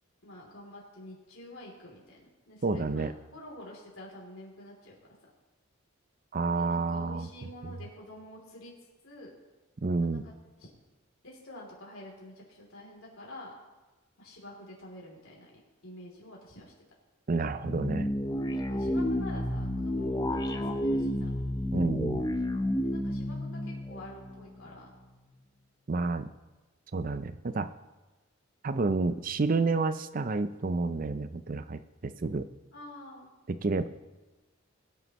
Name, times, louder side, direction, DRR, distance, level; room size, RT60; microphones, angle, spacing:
voice 1, 0.2-4.9 6.5-8.7 9.0-9.3 10.0-10.3 10.6-10.7 11.2-13.5 14.2-16.7 18.7-21.3 22.8-24.9 32.7-33.3, left 1 dB, 75° left, -3 dB, 3.0 m, -48 dB
voice 2, 2.6-3.1 6.3-7.3 9.8-10.2 17.3-18.1 21.7-22.3 25.9-26.3 26.9-27.7 28.6-32.4 33.5-33.9, right 3 dB, 40° right, 11 dB, 0.5 m, -29 dB
sound 1, 17.6-24.8, left 1 dB, 20° left, 0.5 m, -31 dB
22.0 x 7.7 x 3.0 m, 1.2 s
head